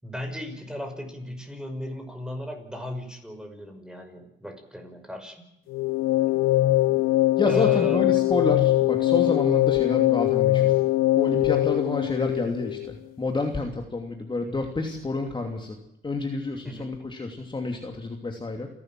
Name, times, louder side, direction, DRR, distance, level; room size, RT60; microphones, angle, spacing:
voice 1, 0.0-5.4 7.4-8.1 16.6-16.9, equal, 5° right, 5 dB, 5.9 m, -36 dB
sound 1, 5.7-12.9, left 16 dB, 85° left, 0.8 m, -22 dB
voice 2, 7.4-10.8 11.2-15.8 16.0-18.7, left 3 dB, 25° left, 3 dB, 2.8 m, -29 dB
29.5 x 12.5 x 7.7 m, 0.84 s
cardioid pair, 90°, 20 cm